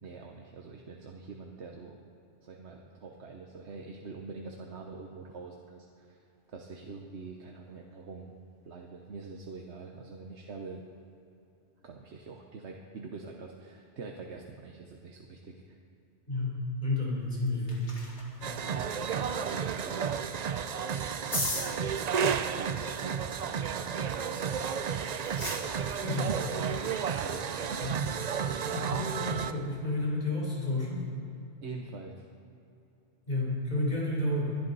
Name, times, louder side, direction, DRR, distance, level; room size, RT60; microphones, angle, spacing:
voice 1, 0.0-2.0 2.4-6.2 6.5-8.3 8.6-10.8 11.8-15.8 18.6-20.4 21.6-22.0 22.4-25.1 27.1-27.8 31.6-32.2, right 4 dB, 70° right, 2 dB, 1.2 m, -45 dB
voice 2, 16.3-18.0 26.0-26.3 27.8-27.9 28.6-31.1 33.3-34.6, left 2 dB, 35° left, -5 dB, 4.0 m, -31 dB
sound 1, 17.2-29.8, left 2 dB, 70° left, 2.7 m, -44 dB
sound 2, 18.4-29.5, right 7 dB, 55° right, 0.5 m, -32 dB
24.0 x 11.0 x 4.1 m, 2.7 s
omnidirectional pair, 1.2 m